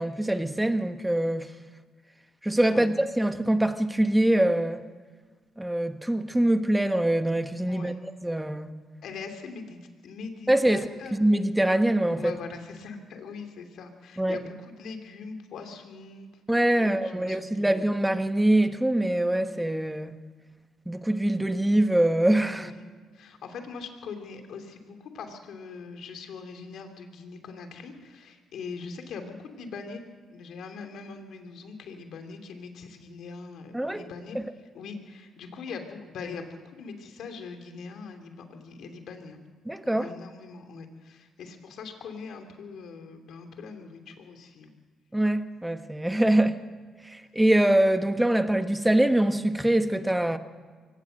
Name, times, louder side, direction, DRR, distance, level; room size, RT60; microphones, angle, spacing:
voice 1, 0.0-1.5 2.4-4.8 5.6-7.9 8.2-8.7 10.5-12.3 14.2-14.4 16.5-20.1 20.9-22.7 33.7-34.0 39.7-40.1 45.1-46.6 47.3-50.4, right 1 dB, 5° right, 1.2 m, -24 dB
voice 2, 7.7-8.0 9.0-11.2 12.2-16.3 16.8-17.8 22.5-22.7 23.1-30.0 30.3-34.4 34.7-39.4 39.8-44.7, left 5 dB, 75° left, 3.0 m, -41 dB
24.0 x 17.0 x 6.5 m
cardioid pair, 90°, 0 cm